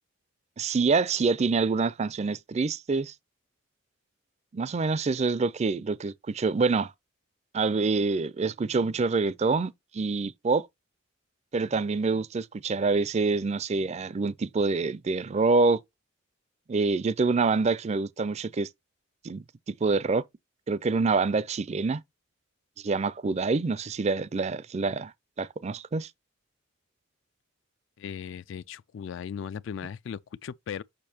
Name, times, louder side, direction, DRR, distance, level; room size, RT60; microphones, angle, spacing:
voice 1, 0.6-3.1 4.5-6.9 7.5-10.7 11.5-15.8 16.7-18.7 19.2-20.2 20.7-22.0 22.8-25.1 25.4-26.1, right 4 dB, 30° right, 0.4 m, -26 dB
voice 2, 28.0-30.8, left 7 dB, 60° left, 0.3 m, -37 dB
6.6 x 5.9 x 2.8 m
head